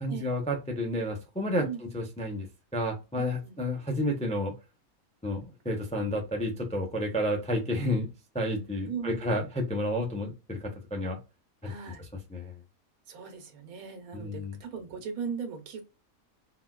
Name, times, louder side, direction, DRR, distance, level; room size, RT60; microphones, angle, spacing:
voice 1, 0.0-1.7 1.9-2.5 2.7-4.5 5.2-8.1 8.3-11.2 11.6-11.7 12.3-12.5 14.1-14.5, left 1 dB, 10° left, 2 dB, 0.3 m, -30 dB
voice 2, 3.1-3.6 8.9-9.3 11.6-12.0 13.1-15.8, right 6 dB, 85° right, 6 dB, 1.3 m, -38 dB
3.9 x 2.2 x 2.3 m, 0.28 s
omnidirectional pair, 1.5 m